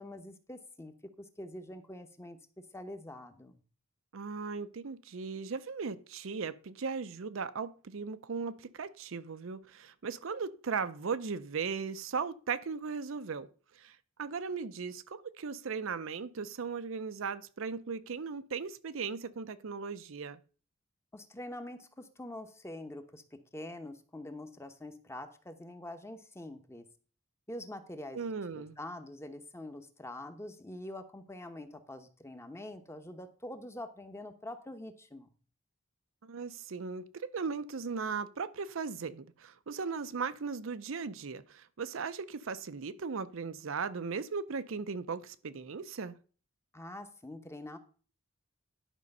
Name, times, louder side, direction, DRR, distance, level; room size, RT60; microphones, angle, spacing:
voice 1, 0.0-3.6 21.1-26.9 27.5-35.3 46.7-47.8, left 1 dB, 15° left, 0.9 m, -45 dB
voice 2, 4.1-13.5 13.7-20.4 28.1-28.8 36.2-46.2, right 5 dB, 70° right, 0.6 m, -37 dB
11.0 x 5.3 x 5.3 m
head